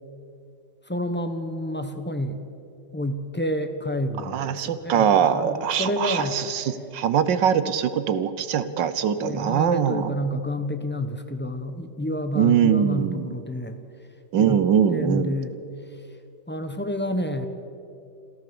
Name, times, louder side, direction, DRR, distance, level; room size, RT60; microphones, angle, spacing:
voice 1, 0.9-2.4 2.9-6.4 9.2-13.8 14.4-14.6 14.9-15.5 16.5-17.5, left 1 dB, 10° left, 7 dB, 0.6 m, -29 dB
voice 2, 4.2-10.1 12.3-13.3 14.3-15.3, right 8 dB, 75° right, 13 dB, 1.5 m, -22 dB
26.5 x 14.0 x 7.0 m, 2.6 s
omnidirectional pair, 2.0 m